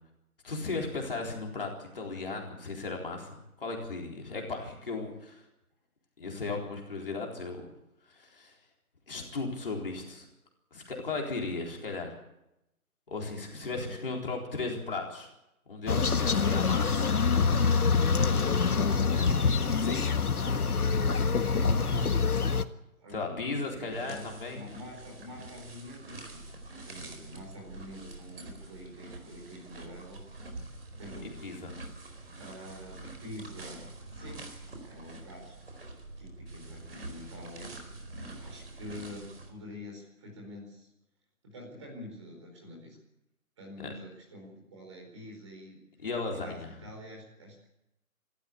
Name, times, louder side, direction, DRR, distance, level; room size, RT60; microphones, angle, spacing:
voice 1, 0.4-5.4 6.2-7.7 8.1-8.5 9.1-10.3 10.7-12.2 13.1-15.3 15.7-17.2 19.8-20.1 23.1-24.6 31.4-31.8 46.0-46.7, left 3 dB, 40° left, 0 dB, 4.0 m, -36 dB
voice 2, 13.7-14.0 18.1-19.4 21.4-22.5 23.0-26.4 26.8-30.2 31.0-31.5 32.4-35.5 35.8-37.8 38.3-40.9 41.4-43.0 43.6-45.8 46.3-47.7, left 1 dB, 20° right, 0 dB, 4.7 m, -46 dB
sound 1, 15.9-22.6, left 5 dB, 80° left, 1.7 m, -25 dB
sound 2, 23.9-39.5, right 2 dB, 40° right, 4.5 m, -46 dB
27.0 x 13.5 x 8.4 m, 0.89 s
hypercardioid pair, 175°, 44 cm